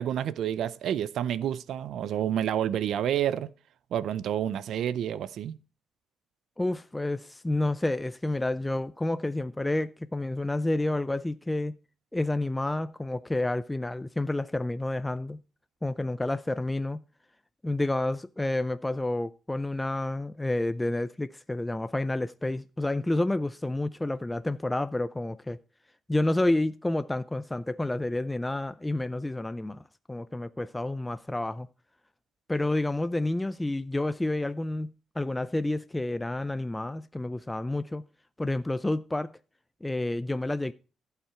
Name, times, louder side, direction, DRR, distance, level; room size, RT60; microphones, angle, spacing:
voice 1, 0.0-3.5 3.9-5.6, right 10 dB, 75° right, 0.5 m, -29 dB
voice 2, 6.6-11.8 12.1-15.4 15.8-17.0 17.6-25.6 26.1-29.8 30.1-31.7 32.5-38.0 38.4-39.3 39.8-40.7, left 2 dB, 10° left, 0.4 m, -29 dB
15.0 x 5.8 x 4.4 m
cardioid pair, 90°, 0 cm